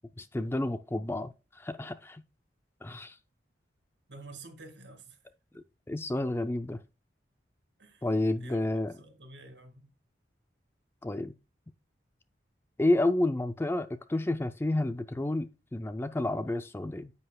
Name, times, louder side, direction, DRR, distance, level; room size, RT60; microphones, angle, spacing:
voice 1, 0.2-2.2 2.8-3.2 5.5-6.8 8.0-8.9 11.0-11.3 12.8-17.1, left 1 dB, 15° left, 0.4 m, -30 dB
voice 2, 4.1-5.2 7.8-8.1 8.4-9.9, right 2 dB, 75° right, 2.1 m, -49 dB
9.5 x 7.9 x 2.3 m
head